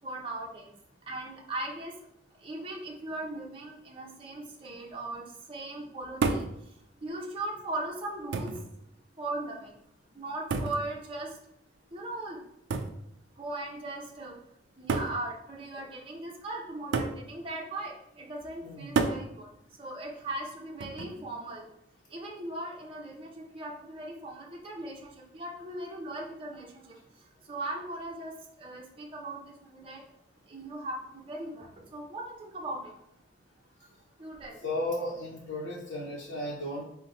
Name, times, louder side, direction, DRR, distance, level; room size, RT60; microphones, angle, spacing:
voice 1, 0.0-0.7 1.1-1.9 2.4-6.4 7.0-8.5 9.2-9.7 10.1-11.3 11.9-12.4 13.4-14.4 14.8-19.5 19.8-21.7 22.1-27.0 27.5-30.0 30.5-32.9 34.2-34.6, right 2 dB, 30° right, -2 dB, 0.7 m, -38 dB
sound 1, 6.2-6.6 7.6-7.7 8.3-8.7 10.5-10.9 12.7-13.0 14.1-14.2 14.9-15.2 16.9-17.2 19.0-19.3 20.8-21.2, right 4 dB, 75° right, 0.4 m, -29 dB
voice 2, 18.6-19.0 34.6-36.8, left 1 dB, 80° left, -5 dB, 0.7 m, -35 dB
3.9 x 2.1 x 4.1 m, 0.77 s
head